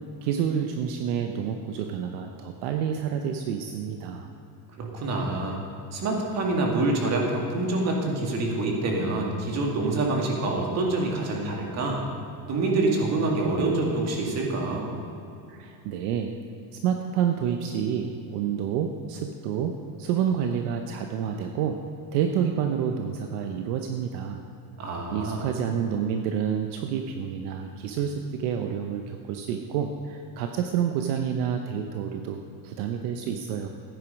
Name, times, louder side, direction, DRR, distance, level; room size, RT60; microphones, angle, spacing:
voice 1, 0.2-4.3 15.5-16.3 16.8-19.7 20.0-21.8 22.1-24.4 25.1-32.4 32.6-33.7, right 8 dB, 65° right, 5 dB, 0.9 m, -28 dB
voice 2, 4.8-5.6 5.9-12.0 12.5-14.8 24.8-25.4, right 2 dB, 30° right, 0 dB, 2.0 m, -26 dB
14.5 x 9.3 x 5.2 m, 2.7 s
cardioid pair, 170°, 49 cm